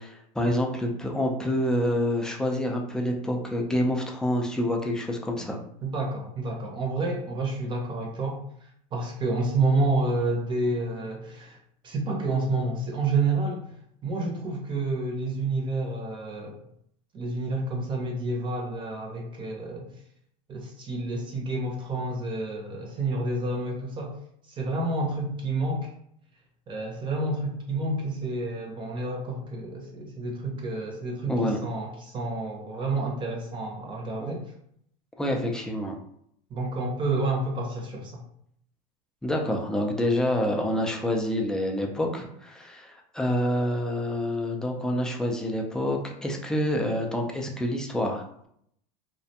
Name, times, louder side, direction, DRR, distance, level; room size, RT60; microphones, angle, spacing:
voice 1, 0.0-5.6 31.3-31.6 34.2-34.3 35.2-36.0 39.2-48.5, left 1 dB, 5° left, 1 dB, 0.3 m, -27 dB
voice 2, 5.8-11.6 11.8-13.6 14.0-16.6 17.1-19.9 20.5-24.1 24.5-25.9 26.7-34.4 36.5-38.2, right 2 dB, 25° right, 0 dB, 0.7 m, -29 dB
2.3 x 2.2 x 2.7 m, 0.69 s
supercardioid pair, 120°, 18 cm